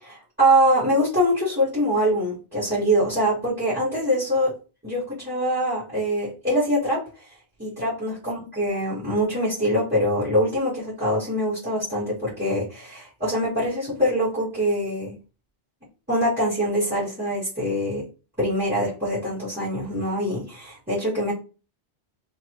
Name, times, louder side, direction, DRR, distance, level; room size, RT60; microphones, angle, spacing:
voice 1, 0.0-4.5 4.8-7.0 7.6-15.2 16.1-18.0 18.4-21.3, equal, 10° right, -10 dB, 2.0 m, -24 dB
3.6 x 3.3 x 2.9 m, 0.33 s
omnidirectional pair, 1.2 m